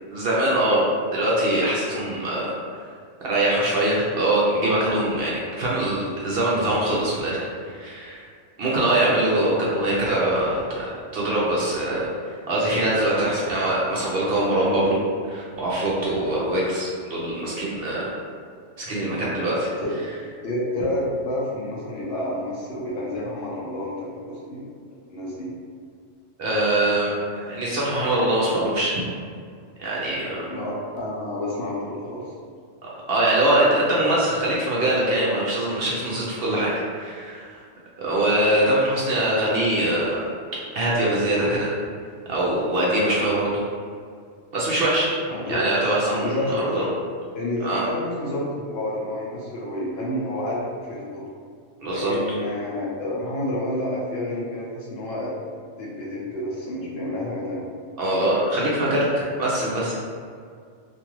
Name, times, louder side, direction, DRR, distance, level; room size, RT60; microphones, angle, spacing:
voice 1, 0.1-0.8 1.1-2.5 3.2-8.2 8.6-12.1 12.5-15.0 15.2-18.1 18.8-19.7 26.4-29.0 29.8-30.5 32.8-37.6 38.0-40.2 40.7-41.7 42.3-43.6 44.5-45.1 45.5-46.8 47.6-47.8 51.8-52.1 58.0-59.9, right 1 dB, 60° right, -5 dB, 0.7 m, -23 dB
voice 2, 9.0-9.4 19.8-20.0 20.4-24.7 25.1-25.5 30.4-32.3 45.3-45.6 46.1-46.8 47.3-51.2 51.9-55.3 55.8-57.6, left 1 dB, 65° left, -5 dB, 0.7 m, -29 dB
2.5 x 2.3 x 2.9 m, 2.1 s
omnidirectional pair, 1.3 m